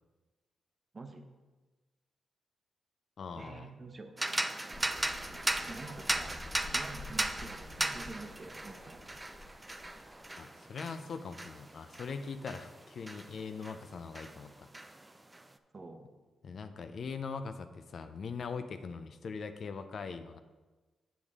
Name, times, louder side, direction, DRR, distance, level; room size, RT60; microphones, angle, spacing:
voice 1, 0.9-1.3 3.4-4.2 5.7-6.4 6.7-9.0 15.7-16.1, right 3 dB, 35° right, 6 dB, 0.9 m, -47 dB
voice 2, 3.2-3.7 10.4-14.7 16.4-20.4, left 5 dB, 55° left, 9 dB, 0.5 m, -41 dB
sound 1, 4.2-13.8 14.1-15.4, right 2 dB, 15° right, 0.4 m, -37 dB
sound 2, 4.7-10.4, left 2 dB, 30° left, 1.7 m, -50 dB
8.1 x 6.9 x 3.6 m, 1.2 s
cardioid pair, 90°, 0 cm